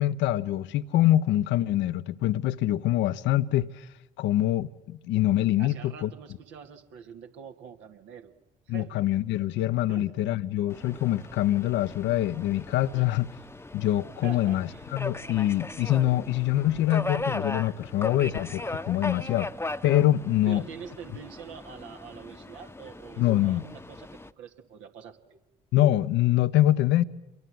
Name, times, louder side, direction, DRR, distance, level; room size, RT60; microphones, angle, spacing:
voice 1, 0.0-3.9 4.2-6.1 8.7-13.3 13.7-19.5 19.8-20.6 23.2-23.7 25.7-27.0, left 13 dB, 70° left, 1.0 m, -25 dB
voice 2, 5.6-8.3 8.7-9.0 9.9-10.1 12.9-13.2 14.2-14.9 20.5-25.4, right 7 dB, 70° right, 2.4 m, -45 dB
Subway metro underground, 10.7-24.3, left 2 dB, 10° left, 1.1 m, -38 dB
28.0 x 23.0 x 7.9 m
hypercardioid pair, 45°, 20 cm